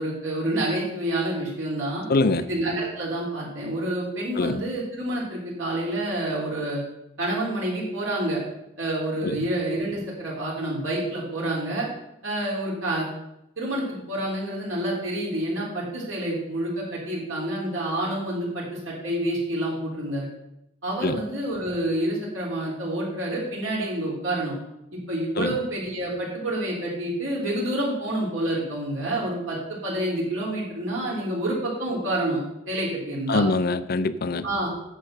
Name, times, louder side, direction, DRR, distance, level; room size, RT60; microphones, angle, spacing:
voice 1, 0.0-2.0 2.4-6.8 7.2-8.4 8.8-11.9 12.2-13.1 13.6-20.3 20.8-24.5 24.9-29.6 29.8-32.4 32.7-33.4 34.4-34.7, right 1 dB, 75° right, -5 dB, 3.7 m, -28 dB
voice 2, 2.1-2.5 4.4-4.6 9.2-9.5 21.0-21.2 25.4-25.6 33.3-34.5, left 3 dB, 50° left, 13 dB, 0.5 m, -24 dB
9.3 x 6.8 x 6.5 m, 0.84 s
head